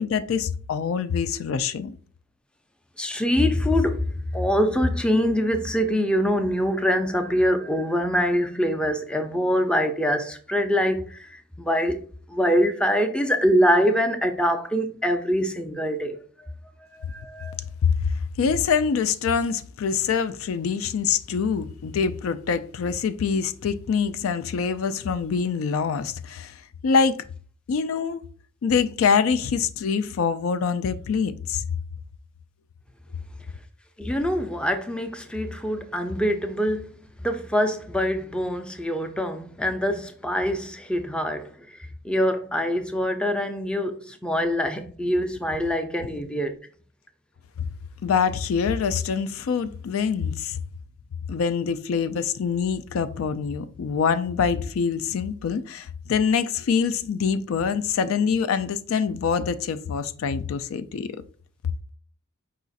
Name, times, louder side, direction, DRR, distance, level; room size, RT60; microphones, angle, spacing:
voice 1, 0.0-1.9 17.8-18.1 18.4-26.6 26.8-27.2 27.7-28.2 28.6-31.6 47.6-47.7 48.0-50.6 51.3-61.1, left 6 dB, 85° left, 0.4 m, -25 dB
voice 2, 3.0-12.0 12.3-16.2 16.9-17.6 34.0-36.9 37.2-41.5 41.8-46.6, equal, 5° left, 0.4 m, -24 dB
4.8 x 2.4 x 3.9 m
head